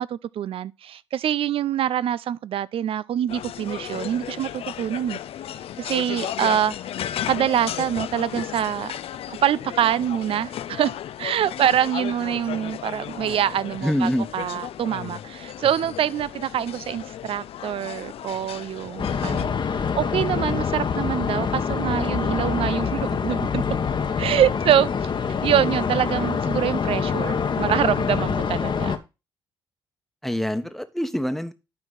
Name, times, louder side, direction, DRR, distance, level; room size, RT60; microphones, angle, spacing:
voice 1, 0.0-5.2 5.8-6.8 7.3-8.9 9.3-23.6 24.2-25.1 25.4-29.0, right 10 dB, 60° right, 0.5 m, -25 dB
sound 1, 3.3-19.4, left 11 dB, 65° left, 0.5 m, -34 dB
voice 2, 13.8-14.3 30.2-31.5, equal, ahead, 1.2 m, -25 dB
sound 2, 19.0-29.0, left 6 dB, 50° left, 1.2 m, -25 dB
11.5 x 4.6 x 4.0 m
hypercardioid pair, 50°, 11 cm